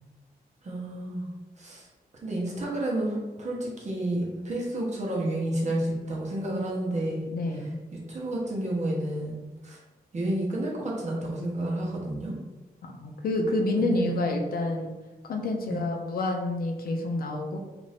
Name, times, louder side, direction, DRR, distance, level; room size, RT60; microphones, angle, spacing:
voice 1, 0.6-1.3 1.6-1.9 2.2-7.2 7.9-9.8 10.1-12.3 13.8-14.4 15.6-15.8, right 1 dB, 45° right, -3 dB, 0.9 m, -30 dB
voice 2, 7.3-7.8 12.8-14.9 15.2-17.6, left 2 dB, 65° left, 2 dB, 0.5 m, -28 dB
2.5 x 2.5 x 3.3 m, 1.2 s
wide cardioid pair, 115°, 16 cm